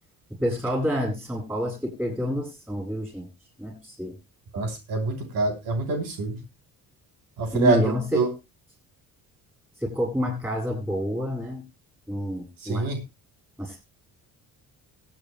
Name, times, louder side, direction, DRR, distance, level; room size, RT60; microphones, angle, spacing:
voice 1, 0.4-3.3 3.6-4.1 7.5-8.2 9.8-11.6 12.1-12.9 13.6-13.8, equal, 5° right, 0 dB, 7.6 m, -28 dB
voice 2, 4.5-6.4 7.4-8.3 12.6-13.0, right 3 dB, 80° right, 3 dB, 3.3 m, -25 dB
24.0 x 9.1 x 2.2 m, 0.25 s
cardioid pair, 145°, 35 cm